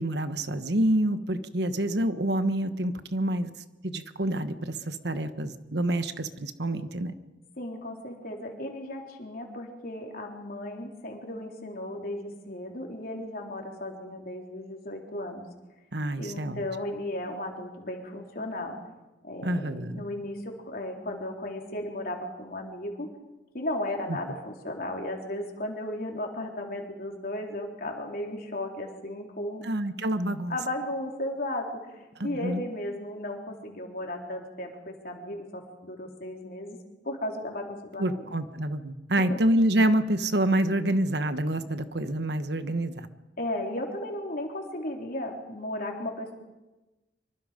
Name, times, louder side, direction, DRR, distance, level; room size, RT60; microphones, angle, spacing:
voice 1, 0.0-3.5 3.8-7.1 15.9-16.6 19.4-20.0 24.3-24.4 29.6-30.6 32.2-32.6 38.0-43.1, right 1 dB, 65° right, 10 dB, 1.3 m, -27 dB
voice 2, 7.6-15.5 16.2-18.8 19.2-23.1 23.5-29.7 30.5-31.9 32.2-36.8 37.0-38.3 39.2-39.4 43.4-46.3, left 1 dB, 55° left, 1 dB, 3.8 m, -35 dB
25.0 x 24.5 x 5.2 m, 1.1 s
head